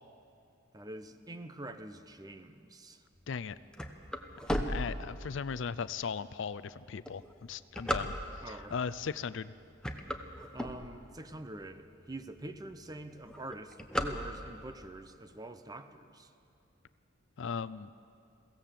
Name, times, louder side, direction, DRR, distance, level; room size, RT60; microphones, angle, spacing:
voice 1, 0.7-3.0 8.4-8.8 10.5-16.3, right 1 dB, 20° right, 9 dB, 0.8 m, -45 dB
sound 1, 3.3-5.6 6.1-6.2 6.9-8.6 9.2-9.5 9.7-11.3 11.8-11.9 12.1-12.2 12.5-12.9 13.1-14.7, equal, 5° left, 1.1 m, -35 dB
voice 2, 4.7-8.1 8.5-9.5 17.4-17.9, left 6 dB, 65° left, 15 dB, 0.5 m, -37 dB
22.5 x 16.5 x 7.5 m, 2.6 s
head